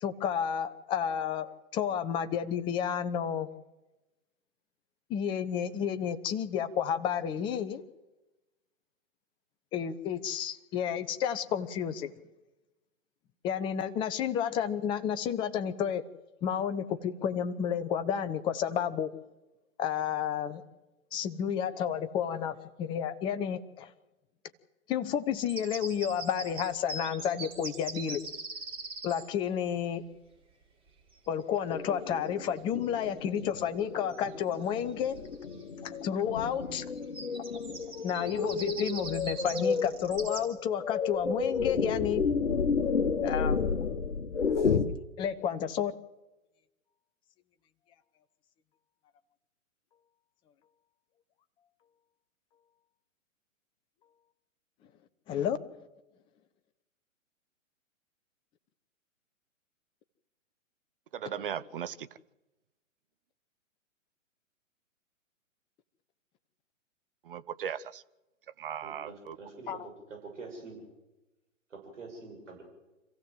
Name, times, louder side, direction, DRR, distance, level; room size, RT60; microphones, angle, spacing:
voice 1, 0.0-3.5 5.1-7.8 9.7-12.1 13.4-16.1 16.4-19.1 19.8-20.6 21.1-23.9 24.9-28.2 29.0-30.0 31.3-35.2 36.0-36.9 38.0-42.3 43.2-43.6 44.6-44.7 45.2-45.9 55.3-55.6 69.7-69.8, left 8 dB, 10° left, 0.7 m, -31 dB
sound 1, 25.3-29.3 32.7-32.9 33.4-33.8 34.1-34.2 34.5-35.6 37.0-40.4, right 3 dB, 15° right, 3.7 m, -42 dB
sound 2, 31.7-44.9, left 5 dB, 60° left, 1.8 m, -32 dB
voice 2, 61.1-62.1 67.2-68.0 68.6-69.4, right 8 dB, 40° right, 0.8 m, -37 dB
voice 3, 68.8-69.7 70.1-70.9 71.7-72.6, right 3 dB, 65° right, 7.4 m, -46 dB
26.5 x 15.5 x 7.9 m
figure-of-eight pair, 120°, 40 cm